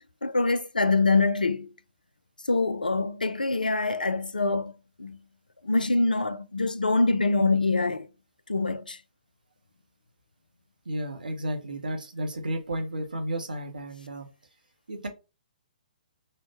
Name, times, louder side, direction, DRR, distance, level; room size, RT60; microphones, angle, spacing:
voice 1, 0.0-1.7 2.5-4.7 5.0-5.2 5.6-8.1 8.5-9.0, left 3 dB, 90° left, 0.4 m, -25 dB
voice 2, 10.9-14.3 14.9-15.1, right 1 dB, 80° right, 0.8 m, -32 dB
3.1 x 2.1 x 2.9 m
figure-of-eight pair, 130°, 5 cm